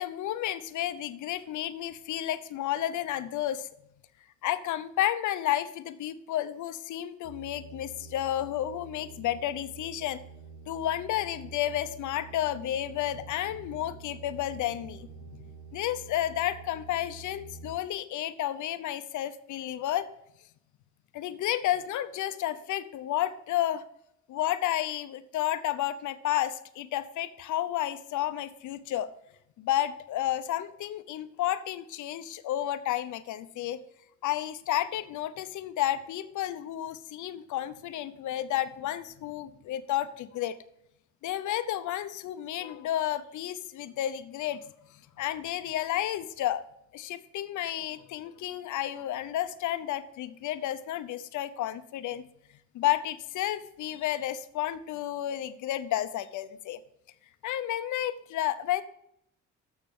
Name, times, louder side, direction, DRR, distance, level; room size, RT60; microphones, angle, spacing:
voice 1, 0.0-3.7 4.4-10.2 10.7-20.1 21.1-23.8 24.3-29.1 29.6-33.8 34.2-40.6 41.2-44.7 45.2-46.6 46.9-52.2 52.7-56.8 57.4-58.8, left 12 dB, 80° left, 13 dB, 0.7 m, -31 dB
sound 1, 7.2-17.8, right 4 dB, 65° right, 1.2 m, -47 dB
13.0 x 6.5 x 3.7 m, 0.78 s
cardioid pair, 90°, 30 cm